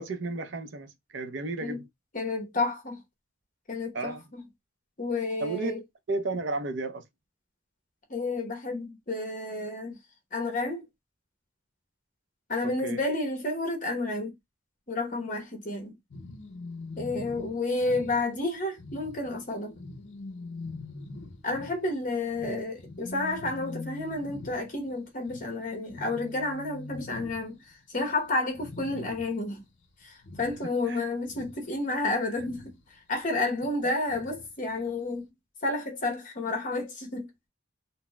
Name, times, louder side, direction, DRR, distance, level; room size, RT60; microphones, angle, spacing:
voice 1, 0.0-1.9 3.9-4.2 5.4-5.7 6.1-7.0 12.6-13.0 30.6-31.0 33.8-33.9, right 2 dB, 70° right, 0.6 m, -33 dB
voice 2, 2.1-3.0 3.7-4.4 5.0-5.8 8.1-10.0 10.3-10.9 12.5-14.4 14.9-16.0 17.0-19.7 21.4-29.7 30.0-32.8 33.1-35.2 35.6-37.5, left 2 dB, 45° left, 1.0 m, -31 dB
sound 1, 16.1-27.8 28.1-28.3 28.5-29.5 29.8-30.9 31.2-32.8 34.1-34.5 34.9-35.0, left 3 dB, 75° left, 0.6 m, -43 dB
3.9 x 2.1 x 2.2 m
head